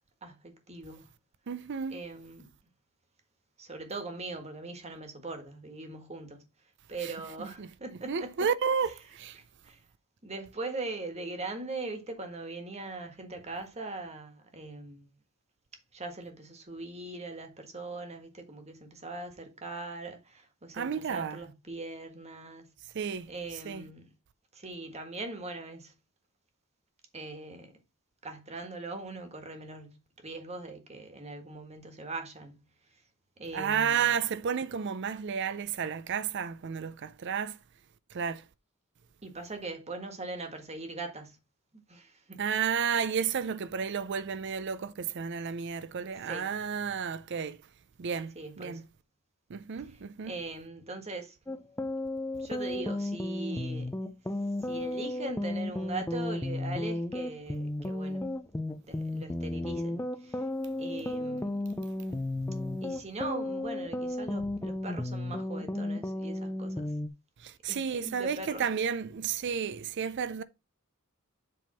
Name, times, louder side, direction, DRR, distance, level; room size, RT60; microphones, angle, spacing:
voice 1, 0.2-1.1 1.9-2.5 3.6-6.4 6.9-8.5 9.4-9.8 10.2-15.1 15.9-22.7 23.3-24.1 24.5-25.9 27.1-27.8 28.2-32.6 33.4-34.1 39.2-41.4 41.7-42.4 46.3-46.5 48.3-48.8 50.2-51.4 52.4-53.9 54.6-58.2 58.9-60.5 60.8-61.6 62.8-66.9 67.7-68.7, right 2 dB, 30° right, 1.6 m, -41 dB
voice 2, 1.5-2.0 7.0-7.1 7.6-7.7 8.1-9.4 20.7-21.4 22.9-23.8 33.5-37.6 38.1-38.5 42.4-47.6 48.0-48.8 49.5-50.3 67.4-70.4, right 7 dB, 55° right, 0.5 m, -32 dB
sound 1, 51.5-67.1, left 1 dB, 10° left, 0.5 m, -34 dB
7.7 x 3.6 x 5.6 m
head